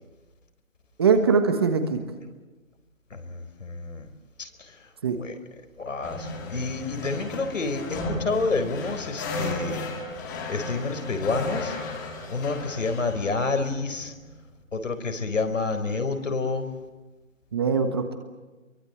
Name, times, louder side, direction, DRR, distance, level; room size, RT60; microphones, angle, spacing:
voice 1, 1.0-2.0 5.0-5.2 17.5-18.1, right 5 dB, 20° right, 7 dB, 1.3 m, -22 dB
voice 2, 3.1-4.1 4.4-4.5 5.2-5.4 5.8-9.8 10.5-11.7 12.3-14.1 14.7-16.7, left 3 dB, 70° left, 8 dB, 4.2 m, -29 dB
sound 1, 6.0-14.6, left 2 dB, 15° left, 2.1 m, -34 dB
28.0 x 23.5 x 8.3 m, 1.2 s
hypercardioid pair, 165°, 39 cm